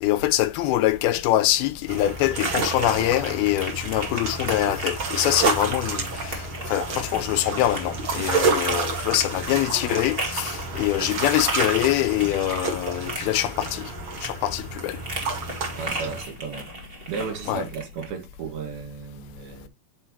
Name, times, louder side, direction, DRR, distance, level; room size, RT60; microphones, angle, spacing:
voice 1, 0.0-13.9 14.2-15.0 17.5-17.6, left 14 dB, 80° left, 2.6 m, -24 dB
sound 1, 0.9-18.1, right 1 dB, 25° right, 1.3 m, -37 dB
sound 2, 1.9-16.2, right 3 dB, 45° right, 1.8 m, -29 dB
voice 2, 15.8-16.7 17.1-19.7, right 6 dB, 70° right, 3.5 m, -34 dB
10.0 x 4.3 x 2.9 m
omnidirectional pair, 4.6 m